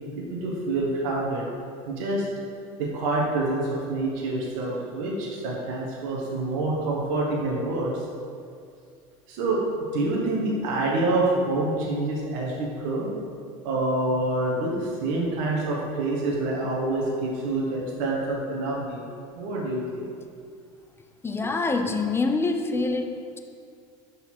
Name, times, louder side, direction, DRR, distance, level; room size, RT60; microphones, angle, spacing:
voice 1, 0.3-1.5 1.9-2.2 2.8-8.0 9.3-9.6 9.9-13.1 13.6-19.0 19.3-20.0, right 2 dB, 70° right, -4 dB, 1.1 m, -27 dB
voice 2, 20.9-23.4, left 3 dB, 15° left, 5 dB, 0.5 m, -26 dB
5.7 x 4.0 x 4.4 m, 2.4 s
supercardioid pair, 100°, 17 cm